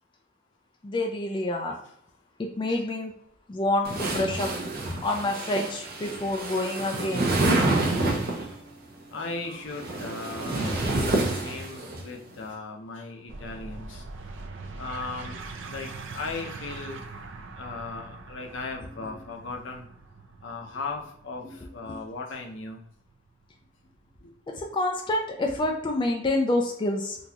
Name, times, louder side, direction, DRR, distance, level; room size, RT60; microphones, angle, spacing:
voice 1, 0.8-1.8 2.6-3.1 3.5-4.5 5.0-7.4 21.9-22.0 24.6-27.2, left 2 dB, 25° left, 1 dB, 0.4 m, -27 dB
sound 1, 3.8-8.5 9.5-12.0, right 2 dB, 50° right, 0.8 m, -28 dB
voice 2, 9.1-14.0 14.8-17.0 17.5-19.9 20.4-22.8 24.2-24.3, left 3 dB, 70° left, 2 dB, 0.7 m, -37 dB
sound 2, 13.3-24.4, right 3 dB, 75° right, 0.5 m, -42 dB
3.8 x 2.4 x 2.8 m, 0.71 s
head